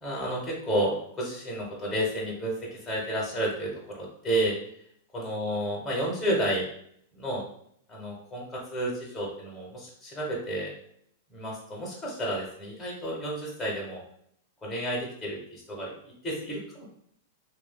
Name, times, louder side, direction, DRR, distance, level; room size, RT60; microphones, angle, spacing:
voice 1, 0.0-4.5 5.1-6.7 7.1-7.4 7.9-10.7 11.3-14.0 14.6-16.9, right 1 dB, 15° left, -3 dB, 1.0 m, -31 dB
3.1 x 2.4 x 2.3 m, 0.66 s
hypercardioid pair, 105°, 0 cm